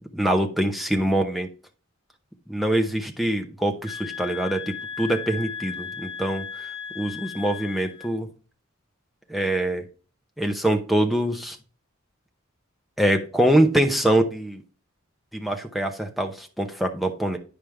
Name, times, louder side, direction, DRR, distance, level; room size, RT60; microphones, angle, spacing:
voice 1, 0.1-1.5 2.5-6.5 7.0-8.3 9.3-9.9 10.4-11.6 13.0-14.6 15.3-17.4, right 1 dB, ahead, 3 dB, 0.8 m, -24 dB
sound 1, 3.8-8.1, left 8 dB, 25° left, 1.2 m, -36 dB
9.1 x 5.0 x 3.4 m, 0.37 s
head